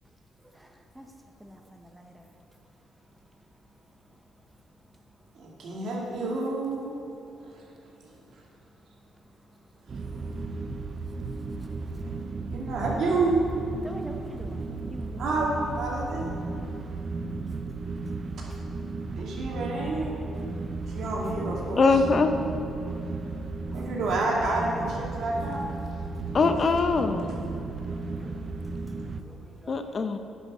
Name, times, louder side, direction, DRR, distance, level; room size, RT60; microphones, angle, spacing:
voice 1, 1.4-2.3 13.8-15.2 18.4-18.5 21.7-22.5 23.7-23.8 28.2-28.4 28.6-28.7 29.2-30.0, right 1 dB, 10° right, 3 dB, 0.9 m, -45 dB
voice 2, 5.3-7.1 7.4-7.6 12.0-12.2 12.5-13.4 13.8-13.9 15.2-16.3 19.2-20.1 20.9-22.0 23.7-25.6 28.1-28.3, right 2 dB, 70° right, -3 dB, 2.4 m, -29 dB
sound 1, 9.9-29.2, right 3 dB, 40° right, 0.6 m, -34 dB
voice 3, 21.8-22.3 26.3-27.3 29.7-30.2, left 4 dB, 45° left, 7 dB, 0.7 m, -22 dB
9.8 x 6.3 x 6.4 m, 2.9 s
cardioid pair, 90°, 0 cm